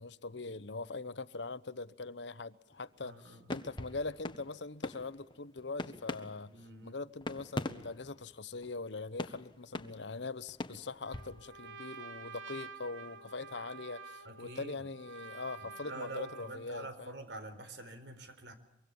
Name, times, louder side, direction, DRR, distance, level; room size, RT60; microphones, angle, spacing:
voice 1, 0.0-6.5 6.8-17.2, left 3 dB, 70° left, 1.1 m, -42 dB
sound 1, 2.7-3.0 3.5-8.9 9.2-11.4, left 2 dB, 25° left, 1.4 m, -43 dB
voice 2, 3.0-3.5 6.5-7.0 14.2-14.8 15.6-18.5, right 2 dB, 70° right, 4.3 m, -46 dB
Trumpet, 11.0-16.7, right 5 dB, 85° right, 2.8 m, -49 dB
24.5 x 24.5 x 7.2 m
head